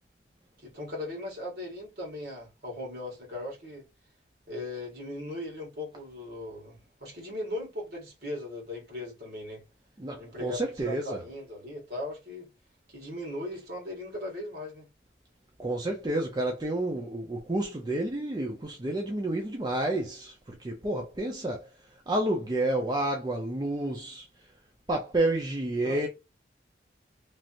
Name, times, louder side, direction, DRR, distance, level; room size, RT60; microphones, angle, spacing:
voice 1, 0.6-3.9 4.5-9.6 10.2-12.5 12.9-14.9 25.8-26.1, left 1 dB, 60° right, 1.7 m, -38 dB
voice 2, 10.0-11.2 15.6-24.3 24.9-26.1, right 1 dB, 25° right, 0.4 m, -30 dB
3.2 x 2.5 x 2.7 m
head